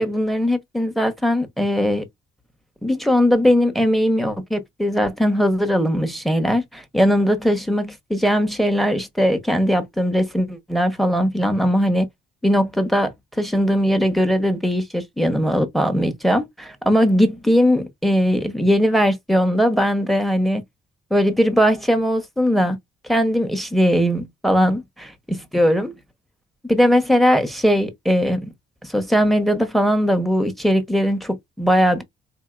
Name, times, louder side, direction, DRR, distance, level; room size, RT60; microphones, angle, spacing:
voice 1, 0.0-2.1 2.8-12.1 12.4-20.6 21.1-22.8 23.1-25.9 26.7-28.5 28.8-32.0, equal, ahead, 1.0 m, -19 dB
4.1 x 2.7 x 2.4 m
cardioid pair, 90°, 20 cm